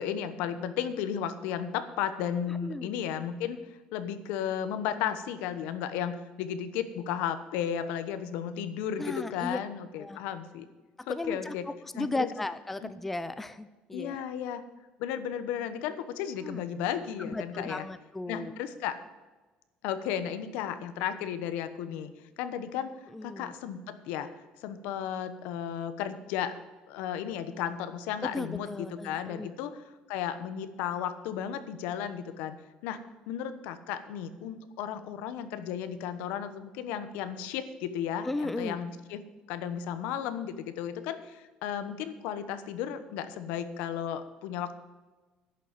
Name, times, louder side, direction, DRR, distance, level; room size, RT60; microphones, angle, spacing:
voice 1, 0.0-3.6 3.9-10.7 11.0-11.6 11.9-12.3 12.8-12.9 13.9-14.6 15.0-17.9 18.3-19.0 19.8-22.1 22.4-22.9 23.2-24.3 24.6-26.5 26.9-29.8 30.1-32.6 32.8-39.2 39.5-44.7, left 9 dB, 85° left, 11 dB, 1.1 m, -34 dB
voice 2, 2.6-2.9 9.0-9.6 10.0-10.2 11.1-11.5 11.9-14.2 16.4-16.6 17.2-18.5 23.1-23.5 28.3-29.5 38.2-38.8, left 2 dB, 5° left, 13 dB, 0.4 m, -35 dB
11.0 x 6.9 x 9.2 m, 1.2 s
cardioid pair, 175°, 3 cm